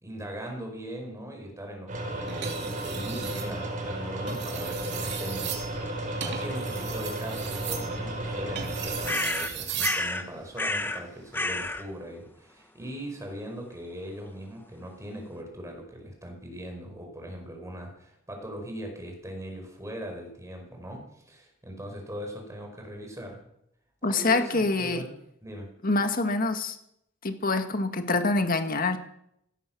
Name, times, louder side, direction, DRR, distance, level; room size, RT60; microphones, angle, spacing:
voice 1, 0.0-5.6 5.9-23.4 24.0-25.7, equal, 15° right, 2 dB, 5.1 m, -40 dB
sound 1, 1.9-9.1, right 1 dB, 40° right, 4.3 m, -33 dB
sound 2, 2.3-3.5 4.2-10.1 11.5-11.8, right 8 dB, 60° right, 3.0 m, -36 dB
sound 3, 9.0-10.3 10.6-11.0 11.3-11.8, left 2 dB, 10° left, 1.1 m, -29 dB
voice 2, 24.0-25.0 25.8-26.8 27.2-29.0, left 3 dB, 45° left, 7 dB, 1.7 m, -25 dB
17.0 x 14.0 x 6.1 m, 0.76 s
head